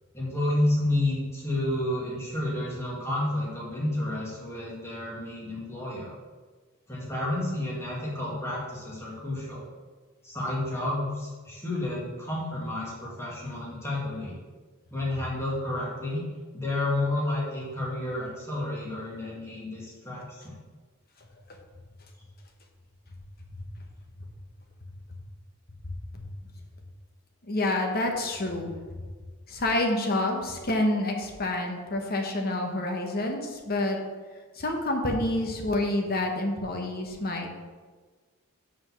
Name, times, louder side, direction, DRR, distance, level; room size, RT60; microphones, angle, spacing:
voice 1, 0.1-6.2 6.9-9.6 10.2-14.4 14.9-16.2 16.5-20.6, left 1 dB, 10° left, -5 dB, 2.0 m, -30 dB
voice 2, 27.5-28.8 29.5-34.0 34.5-37.5, left 1 dB, 45° left, 3 dB, 1.1 m, -28 dB
6.0 x 5.2 x 6.0 m, 1.4 s
head